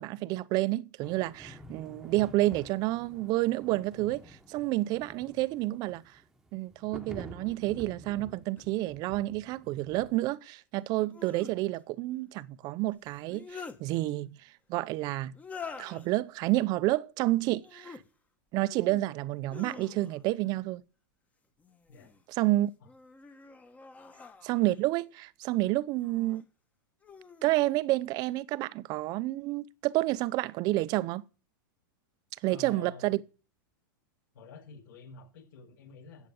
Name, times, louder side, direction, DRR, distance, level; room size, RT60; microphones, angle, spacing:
voice 1, 0.0-6.1 6.5-14.4 14.7-15.3 15.8-18.0 18.5-20.8 22.3-22.7 24.4-26.4 27.4-31.2 32.4-33.2, right 18 dB, 35° right, 0.7 m, -29 dB
sound 1, 1.0-10.2, equal, 5° right, 1.3 m, -50 dB
sound 2, 8.6-8.7 11.0-11.6 13.1-13.8 15.3-16.1 17.6-18.0 18.5-19.1 19.5-20.4 21.6-22.2 22.8-24.8 25.9-26.4 27.0-27.5, left 5 dB, 15° left, 1.2 m, -47 dB
voice 2, 32.4-33.1 34.3-36.3, left 3 dB, 70° left, 7.0 m, -49 dB
13.0 x 8.4 x 9.0 m
supercardioid pair, 150°, 11 cm